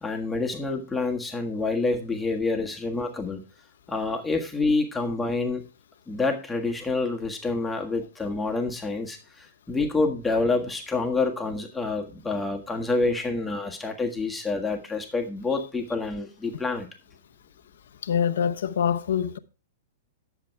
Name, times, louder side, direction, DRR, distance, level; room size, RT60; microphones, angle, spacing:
voice 1, 0.0-3.4 3.9-5.6 6.1-16.9, left 3 dB, 10° left, 1.5 m, -27 dB
voice 2, 18.0-19.4, left 8 dB, 70° left, 0.8 m, -25 dB
10.5 x 7.0 x 4.5 m
hypercardioid pair, 120°, 0 cm